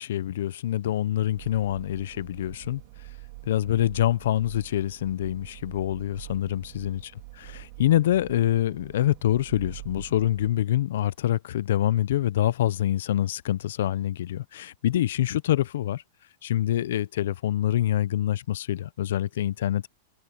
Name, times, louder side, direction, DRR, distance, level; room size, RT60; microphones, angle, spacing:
voice 1, 0.0-2.8 3.5-7.1 7.4-16.0 16.4-19.9, left 12 dB, 70° left, 0.5 m, -26 dB
sound 1, 1.3-10.5, right 21 dB, 45° right, 2.6 m, -45 dB
supercardioid pair, 180°, 0 cm